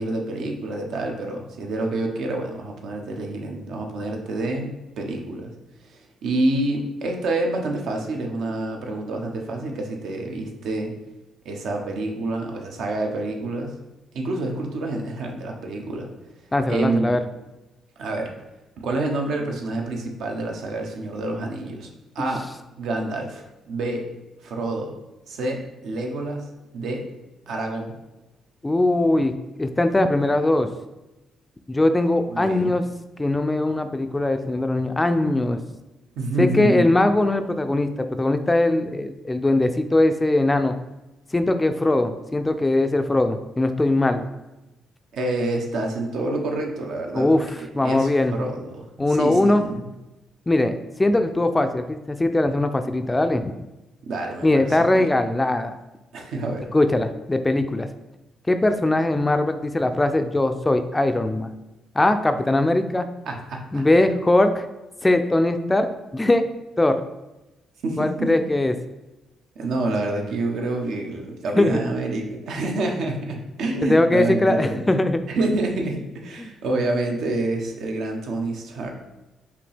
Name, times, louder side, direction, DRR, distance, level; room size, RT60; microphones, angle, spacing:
voice 1, 0.0-5.5 5.9-10.9 11.4-13.7 14.1-16.1 16.7-17.1 18.0-18.3 18.8-22.5 22.8-24.1 24.4-24.9 25.3-27.1 27.5-28.0 32.3-32.7 36.2-36.9 45.1-47.3 47.6-49.8 54.0-55.1 56.1-56.7 63.3-63.8 67.8-68.3 69.6-74.8 75.3-78.9, right 2 dB, 75° right, 2 dB, 0.8 m, -27 dB
voice 2, 16.5-17.2 22.2-22.3 28.6-29.3 29.6-30.7 31.7-32.8 33.2-35.6 36.4-40.7 41.3-44.3 47.1-48.4 49.0-49.7 50.5-50.7 51.0-53.5 54.4-55.8 56.7-57.9 58.5-61.5 62.0-63.1 63.7-64.7 65.0-65.9 66.1-66.4 66.8-67.0 68.0-68.7 71.6-71.8 73.8-75.6 76.4-76.5, left 2 dB, 15° left, 8 dB, 0.3 m, -20 dB
5.0 x 2.7 x 3.4 m, 1.0 s
cardioid pair, 90°, 0 cm